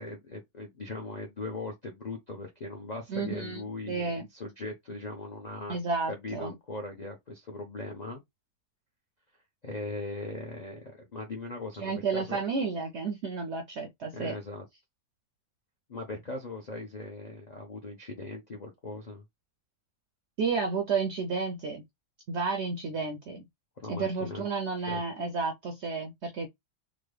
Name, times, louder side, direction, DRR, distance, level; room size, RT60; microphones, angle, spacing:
voice 1, 0.0-5.8 6.1-8.2 9.6-12.4 14.1-14.6 15.9-19.2 23.8-24.4 24.9-25.0, left 2 dB, 55° left, 0.4 m, -39 dB
voice 2, 3.1-3.6 3.9-4.3 5.7-6.5 11.8-14.4 20.4-21.8 22.3-23.5 23.9-26.5, right 4 dB, 65° right, 0.6 m, -31 dB
3.8 x 2.0 x 3.2 m
omnidirectional pair, 1.7 m